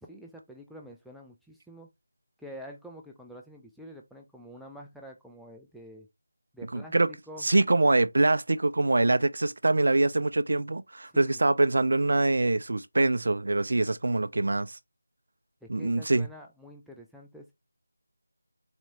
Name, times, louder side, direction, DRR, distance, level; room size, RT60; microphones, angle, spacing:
voice 1, 0.1-1.9 2.4-6.1 6.5-7.5 11.1-11.4 15.6-17.5, equal, ahead, 0.5 m, -47 dB
voice 2, 6.7-7.1 7.4-14.8 15.7-16.3, right 2 dB, 60° right, 0.4 m, -24 dB
4.1 x 3.0 x 2.7 m
figure-of-eight pair, 165°, 0 cm